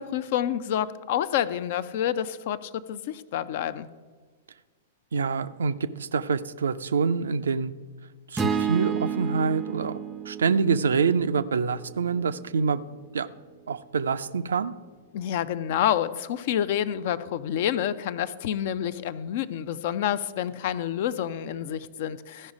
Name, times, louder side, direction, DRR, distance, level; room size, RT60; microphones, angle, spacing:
voice 1, 0.0-3.9 15.1-22.5, left 10 dB, 50° left, 15 dB, 0.5 m, -28 dB
voice 2, 5.1-7.7 8.3-10.0 10.3-12.8 13.1-13.3 13.7-14.7, right 5 dB, 70° right, 13 dB, 0.4 m, -26 dB
sound 1, 8.4-12.6, right 7 dB, 15° right, 0.5 m, -31 dB
14.5 x 5.4 x 4.9 m, 1.5 s
figure-of-eight pair, 105°, 0 cm